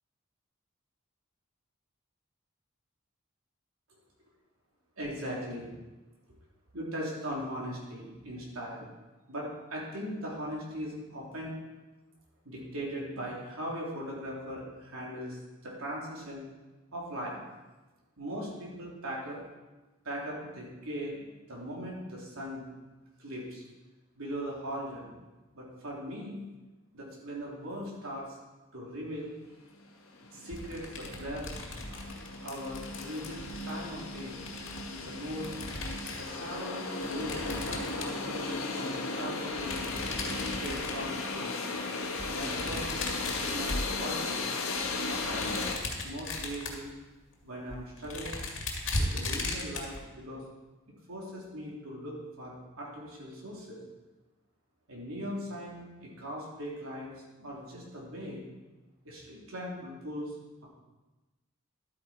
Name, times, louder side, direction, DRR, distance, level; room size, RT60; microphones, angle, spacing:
voice 1, 5.0-5.7 6.7-8.9 9.3-11.6 12.4-16.5 16.9-17.4 18.2-19.4 20.0-22.6 23.2-23.6 24.1-25.1 25.5-26.4 26.9-28.4 28.7-29.3 30.3-31.5 31.9-32.0 32.4-33.4 33.6-34.4 35.0-35.5 36.1-39.8 40.6-41.6 42.2-42.9 43.4-44.4 45.1-45.7 46.0-46.9 47.4-48.4 49.0-50.4 51.1-53.8 54.9-57.1 57.4-58.4 59.0-60.3, equal, 85° right, -4 dB, 3.5 m, -39 dB
sound 1, 29.8-29.9 30.1-45.7, left 3 dB, 85° left, 1.5 m, -36 dB
sound 2, 30.5-36.4 37.0-38.6 39.5-41.2 42.0-44.3 44.8-46.9 47.3-47.4 47.7-50.0, left 2 dB, 60° left, 2.0 m, -37 dB
12.0 x 9.0 x 4.5 m, 1.1 s
head